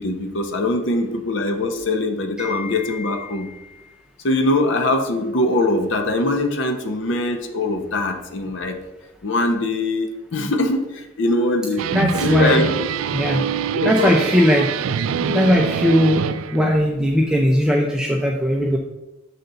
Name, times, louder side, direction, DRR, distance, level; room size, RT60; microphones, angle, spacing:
voice 1, 0.0-3.5 4.2-8.7 9.2-11.9 12.2-12.9 13.7-14.2, left 2 dB, 65° left, 6 dB, 0.7 m, -22 dB
voice 2, 2.4-3.4 11.9-12.6 13.1-13.4 13.8-14.7 15.1-16.2 16.5-18.8, equal, 5° right, 0 dB, 0.5 m, -19 dB
sound 1, 11.8-16.8, right 7 dB, 85° right, 0.3 m, -25 dB
6.7 x 4.0 x 5.6 m, 0.99 s
head